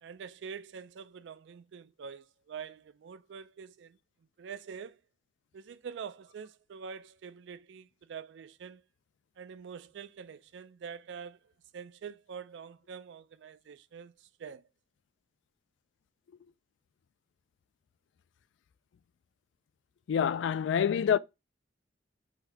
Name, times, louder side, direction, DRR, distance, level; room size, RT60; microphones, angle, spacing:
voice 1, 0.0-4.0 4.4-5.0 5.5-8.8 9.4-11.4 11.7-14.7, right 6 dB, 70° right, 0.3 m, -45 dB
voice 2, 20.1-21.2, left 8 dB, 75° left, 0.3 m, -26 dB
4.0 x 2.7 x 4.4 m
head